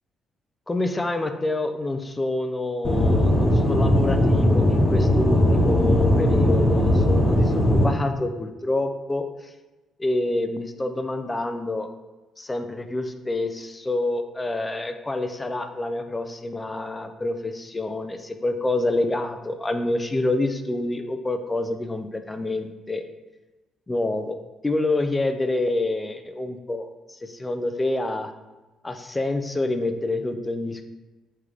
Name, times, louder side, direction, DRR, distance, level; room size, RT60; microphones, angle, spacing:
voice 1, 0.7-9.5 10.0-11.9 12.4-23.0 23.9-24.4 24.6-28.3 28.8-30.9, left 2 dB, 20° left, 7 dB, 0.4 m, -27 dB
Aircraft / Engine, 2.8-7.8, left 1 dB, 40° left, 1.1 m, -19 dB
3.2 x 3.2 x 3.8 m, 1.1 s
cardioid pair, 90°, 0 cm